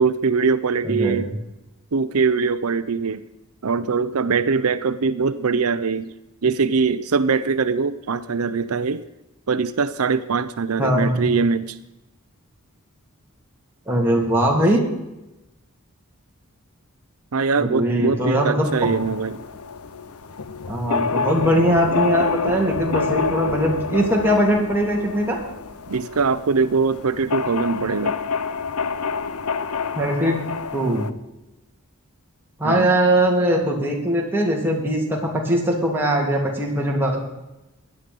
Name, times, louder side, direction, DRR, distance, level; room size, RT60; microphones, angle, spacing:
voice 1, 0.0-1.3 1.9-3.2 3.6-6.1 6.4-9.0 9.5-11.8 17.3-19.4 25.9-28.1 32.6-32.9, right 5 dB, 80° right, 13 dB, 0.6 m, -22 dB
voice 2, 0.8-1.2 10.8-11.2 13.9-14.8 17.6-18.7 20.7-25.4 29.9-30.4 30.7-31.0 32.6-37.2, right 1 dB, 10° right, -1 dB, 3.0 m, -21 dB
sound 1, 18.6-31.1, left 5 dB, 80° left, 0.8 m, -28 dB
16.5 x 11.0 x 5.4 m, 0.98 s
head